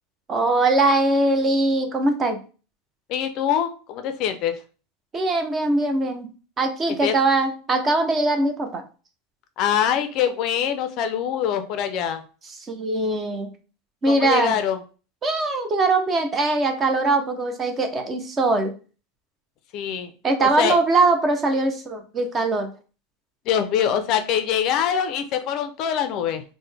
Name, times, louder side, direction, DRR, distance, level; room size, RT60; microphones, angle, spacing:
voice 1, 0.3-2.4 5.1-6.3 6.6-8.8 12.7-13.5 14.0-14.6 15.2-18.7 20.2-22.7, right 2 dB, 20° right, 6 dB, 0.5 m, -21 dB
voice 2, 3.1-4.5 7.0-7.1 9.6-12.2 14.1-14.8 19.7-20.1 20.4-20.8 23.5-26.4, left 9 dB, 45° left, 8 dB, 0.4 m, -24 dB
3.7 x 2.0 x 3.3 m, 0.36 s
supercardioid pair, 145°, 0 cm